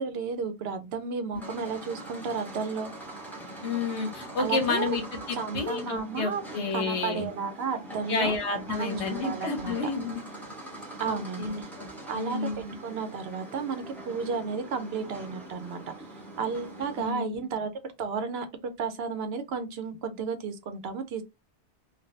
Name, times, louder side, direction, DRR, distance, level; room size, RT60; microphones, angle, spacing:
voice 1, 0.0-2.9 4.4-5.0 5.3-6.4 6.7-8.3 8.7-9.8 11.0-11.7 12.1-15.8 16.4-21.2, right 5 dB, 70° right, 0.8 m, -33 dB
sound 1, 1.3-17.1, right 1 dB, ahead, 0.7 m, -43 dB
voice 2, 3.6-7.3 8.1-10.2 11.1-12.8 17.0-17.4, left 4 dB, 75° left, 1.2 m, -31 dB
3.2 x 2.3 x 2.6 m
omnidirectional pair, 1.1 m